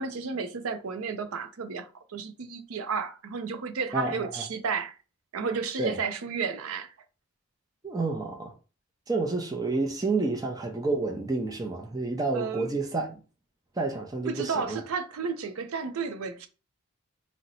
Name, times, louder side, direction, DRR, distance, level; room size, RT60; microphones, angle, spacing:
voice 1, 0.0-5.0 5.3-6.9 12.3-12.7 14.3-16.5, right 5 dB, 75° right, 0.5 m, -32 dB
voice 2, 3.9-4.4 5.8-6.0 7.8-8.5 9.1-13.2 13.8-14.8, right 3 dB, 15° right, 0.4 m, -29 dB
2.8 x 2.1 x 3.9 m
head